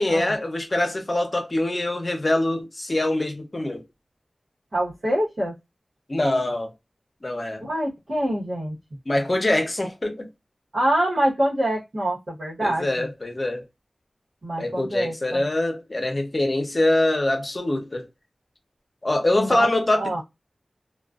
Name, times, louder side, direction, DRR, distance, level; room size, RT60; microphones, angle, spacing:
voice 1, 0.0-3.8 6.1-6.7 7.2-7.7 9.1-10.3 12.6-13.6 14.6-18.1 19.0-20.2, left 1 dB, 45° left, 0.7 m, -24 dB
voice 2, 4.7-5.5 7.6-8.7 10.7-13.1 14.4-15.4 19.3-19.7 20.0-20.2, right 1 dB, 70° right, 1.0 m, -25 dB
2.3 x 2.3 x 2.3 m
cardioid pair, 45°, 0 cm